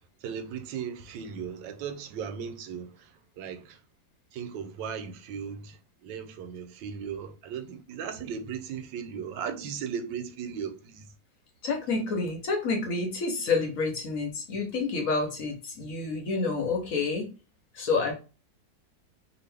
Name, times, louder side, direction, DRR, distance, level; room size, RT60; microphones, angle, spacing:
voice 1, 0.2-3.8 4.3-11.1, right 7 dB, 90° right, 1.3 m, -37 dB
voice 2, 11.6-17.3 17.7-18.1, left 4 dB, 55° left, 1.1 m, -29 dB
2.9 x 2.5 x 3.3 m
omnidirectional pair, 1.9 m